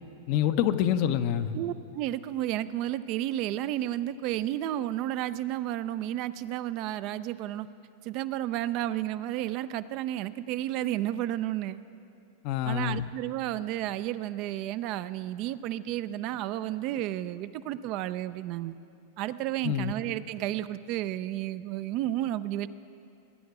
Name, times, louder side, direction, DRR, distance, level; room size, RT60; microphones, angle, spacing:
voice 1, 0.3-1.6 12.4-13.1 19.6-19.9, left 10 dB, 55° left, 10 dB, 0.6 m, -26 dB
voice 2, 1.5-7.7 8.0-11.8 12.6-18.7 19.2-22.7, right 13 dB, 50° right, 14 dB, 0.4 m, -32 dB
19.5 x 9.4 x 4.8 m, 2.6 s
hypercardioid pair, 105°, 0 cm